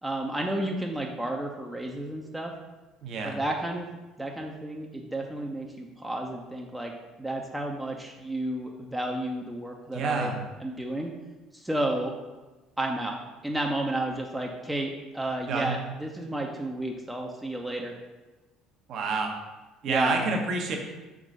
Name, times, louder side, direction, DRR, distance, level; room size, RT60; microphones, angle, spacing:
voice 1, 0.0-2.5 3.2-6.9 7.2-10.3 10.6-11.1 11.5-12.1 12.8-13.2 13.4-17.9 19.9-20.2, right 1 dB, 5° right, 0 dB, 0.7 m, -32 dB
voice 2, 3.0-3.4 9.9-10.4 15.5-15.8 18.9-19.3 19.8-20.8, right 4 dB, 50° right, 2 dB, 1.0 m, -28 dB
4.8 x 3.7 x 5.4 m, 1.2 s
figure-of-eight pair, 55°, 0 cm